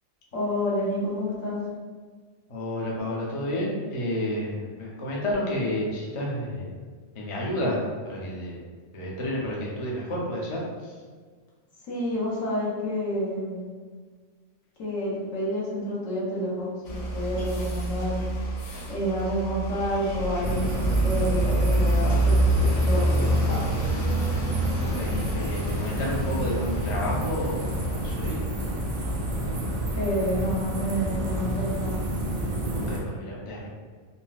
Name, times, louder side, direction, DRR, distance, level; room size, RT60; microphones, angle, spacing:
voice 1, 0.3-1.6 11.9-13.6 14.8-18.2 18.9-23.7 30.0-32.0, equal, 75° left, -6 dB, 1.2 m, -29 dB
voice 2, 2.5-6.7 7.1-7.8 8.0-8.6 8.9-10.9 24.8-28.4 32.7-33.7, left 1 dB, 45° left, -4 dB, 0.4 m, -30 dB
sound 1, 16.9-30.6, right 1 dB, 90° left, 1.2 m, -27 dB
sound 2, 20.4-33.0, right 1 dB, 60° right, 0.7 m, -30 dB
3.9 x 2.1 x 2.3 m, 1.5 s
omnidirectional pair, 1.4 m